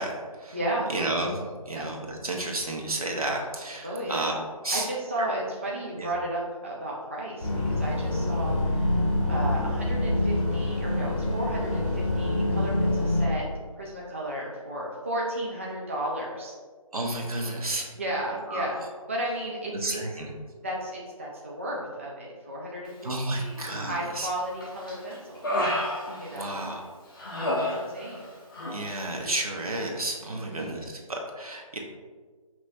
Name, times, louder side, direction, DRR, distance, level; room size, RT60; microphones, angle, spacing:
voice 1, 0.0-0.6 0.9-4.4 4.6-4.9 5.2-5.3 6.0-6.1 16.9-17.9 18.5-18.7 19.8-20.3 23.0-24.3 26.4-26.8 28.7-31.8, right 2 dB, 75° right, 0 dB, 1.0 m, -31 dB
voice 2, 0.5-0.9 1.7-1.9 3.8-4.3 4.7-13.5 13.7-16.6 18.0-18.8 19.1-20.0 20.6-25.7 26.2-26.7 27.7-28.3 30.2-30.7, right 1 dB, 20° right, -4 dB, 0.3 m, -34 dB
sound 1, 7.4-13.3, left 1 dB, 55° left, 1.2 m, -26 dB
Human voice, 23.6-24.2 24.6-26.7 27.2-28.3 28.5-28.8, left 1 dB, 35° left, 0.9 m, -31 dB
5.6 x 3.0 x 2.7 m, 1.5 s
figure-of-eight pair, 160°, 19 cm